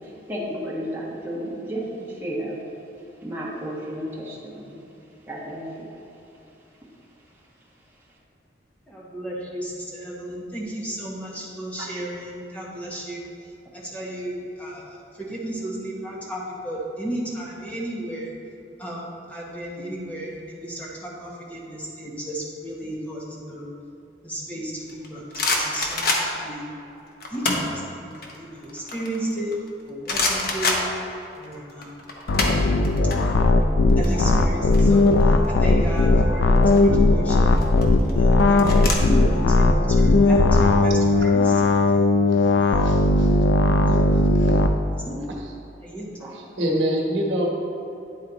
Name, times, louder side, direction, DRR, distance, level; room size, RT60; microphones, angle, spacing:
voice 1, 0.0-2.6 3.2-4.8 5.2-5.9 32.1-32.3 46.2-46.3, equal, 10° right, -6 dB, 1.2 m, -33 dB
voice 2, 8.9-13.2 13.7-18.3 18.8-23.7 24.2-26.7 27.3-29.5 29.9-30.9 31.3-31.9 33.2-33.3 34.0-37.5 38.1-42.2 42.6-42.8 43.7-44.1 44.9-45.2 45.8-46.1, right 1 dB, 10° left, -5 dB, 1.0 m, -34 dB
sound 1, 24.9-26.6 27.2-27.8 28.1-29.7 30.1-31.5 31.7-33.2 33.4-33.6 33.9-35.5 36.4-36.8 37.5-38.9, left 3 dB, 55° left, 0.9 m, -26 dB
sound 2, 32.3-44.7, left 2 dB, 90° left, 0.4 m, -18 dB
voice 3, 42.8-43.4 44.4-44.6 46.3-47.5, equal, 90° right, -1 dB, 1.2 m, -26 dB
9.6 x 4.1 x 4.0 m, 2.9 s
head